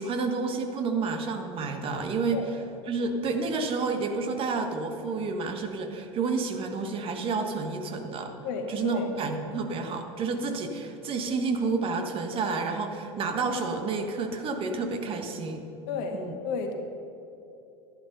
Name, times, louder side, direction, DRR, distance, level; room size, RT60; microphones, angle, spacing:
voice 1, 0.0-2.4 2.9-8.3 8.7-15.7 16.1-16.3, right 4 dB, 40° right, 5 dB, 1.4 m, -30 dB
voice 2, 8.4-9.1 15.9-16.7, left 5 dB, 60° left, 4 dB, 1.7 m, -32 dB
11.0 x 11.0 x 5.4 m, 2.9 s
hypercardioid pair, 80°, 14 cm